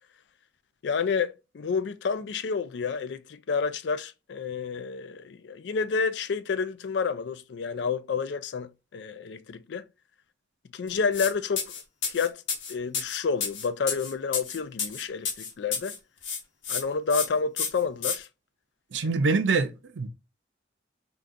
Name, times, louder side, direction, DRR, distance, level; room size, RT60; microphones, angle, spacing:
voice 1, 0.8-9.8 10.7-11.7 12.1-12.4 12.7-15.9 16.7-18.3, left 5 dB, 70° left, 0.4 m, -29 dB
sound 1, 11.1-11.3 11.6-16.0 16.2-16.8 17.1-17.3 17.6-18.2, left 6 dB, 90° left, 0.9 m, -30 dB
voice 2, 18.9-20.1, right 4 dB, 80° right, 0.6 m, -25 dB
3.6 x 2.3 x 2.5 m
head